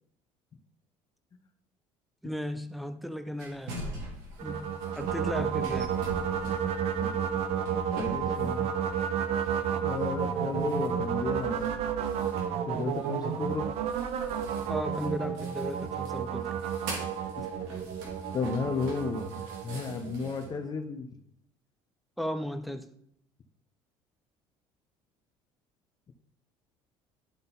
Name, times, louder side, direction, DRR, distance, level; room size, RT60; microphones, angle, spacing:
voice 1, 2.2-4.0 4.4-6.0 14.7-16.6 22.2-22.9, equal, ahead, 0.6 m, -36 dB
sound 1, 3.4-9.0 9.3-20.5, right 2 dB, 90° right, 2.2 m, -45 dB
sound 2, 4.4-20.6, right 8 dB, 60° right, 0.7 m, -31 dB
voice 2, 7.0-7.3 8.0-8.7 9.8-11.8 12.7-13.7 17.4-17.5 18.3-21.1, left 4 dB, 35° left, 0.8 m, -34 dB
11.5 x 3.9 x 4.0 m
supercardioid pair, 100°, 12 cm